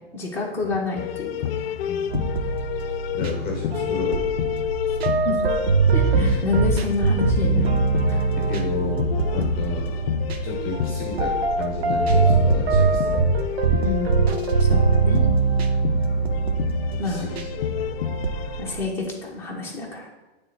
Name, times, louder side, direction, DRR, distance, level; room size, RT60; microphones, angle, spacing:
voice 1, 0.1-1.3 5.2-5.3 5.9-7.8 8.1-8.2 13.8-15.3 17.0-17.3 18.6-20.1, left 3 dB, 5° left, -4 dB, 1.5 m, -28 dB
sound 1, 1.0-18.9, left 9 dB, 70° left, 0.5 m, -29 dB
sound 2, 2.1-18.9, right 4 dB, 90° right, 0.8 m, -23 dB
voice 2, 3.1-4.2 6.0-6.4 8.3-10.0 10.4-13.3 14.9-15.2 15.8-16.1 16.9-17.5, left 4 dB, 30° left, 1 dB, 1.1 m, -32 dB
8.8 x 3.5 x 4.3 m, 1.2 s
hypercardioid pair, 130°, 31 cm